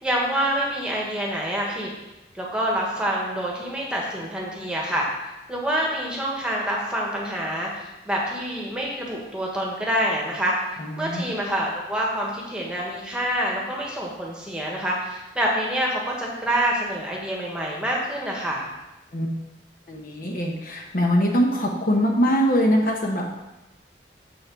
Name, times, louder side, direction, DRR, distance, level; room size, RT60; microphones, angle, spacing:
voice 1, 0.0-1.9 2.3-5.1 5.5-10.5 11.0-18.7, equal, 5° right, -3 dB, 1.5 m, -26 dB
voice 2, 10.8-11.3 19.1-19.3 19.9-23.3, equal, 50° left, 1 dB, 1.1 m, -22 dB
7.2 x 6.4 x 4.7 m, 0.97 s
head